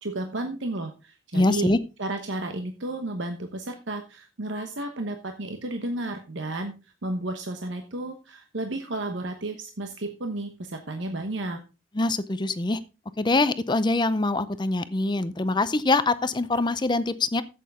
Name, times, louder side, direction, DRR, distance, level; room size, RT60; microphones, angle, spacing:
voice 1, 0.0-1.7 2.0-11.6, right 2 dB, 70° right, 5 dB, 1.1 m, -32 dB
voice 2, 1.3-1.8 12.0-12.8 13.2-17.4, left 2 dB, 25° left, 14 dB, 0.5 m, -24 dB
11.0 x 8.4 x 3.5 m, 0.30 s
head